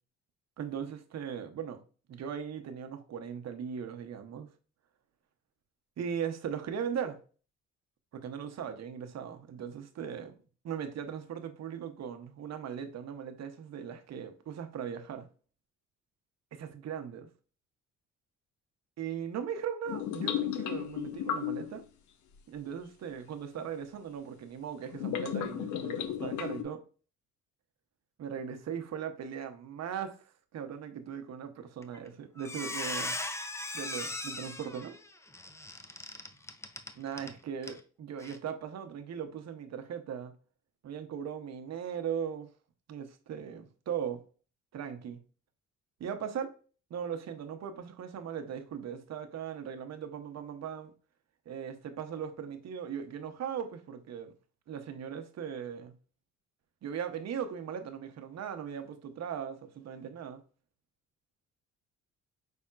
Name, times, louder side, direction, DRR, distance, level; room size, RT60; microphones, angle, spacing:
voice 1, 0.6-1.8 2.1-4.5 6.0-7.2 8.1-10.4 10.6-15.3 16.5-17.3 19.0-21.8 22.5-26.8 28.2-33.2 33.7-35.0 36.9-40.3 40.8-42.5 42.9-44.2 44.7-45.2 46.0-46.6 46.9-50.9 51.5-54.3 54.7-55.9 56.8-60.4, right 8 dB, 60° right, 0.8 m, -39 dB
sound 1, 19.9-21.8 23.6-23.7 24.9-26.6, left 10 dB, 75° left, 0.6 m, -34 dB
Squeak, 31.8-32.1 32.4-37.3 37.6-37.8 38.2-38.4, left 2 dB, 10° left, 0.5 m, -38 dB
5.5 x 3.5 x 2.4 m
cardioid pair, 90°, 30 cm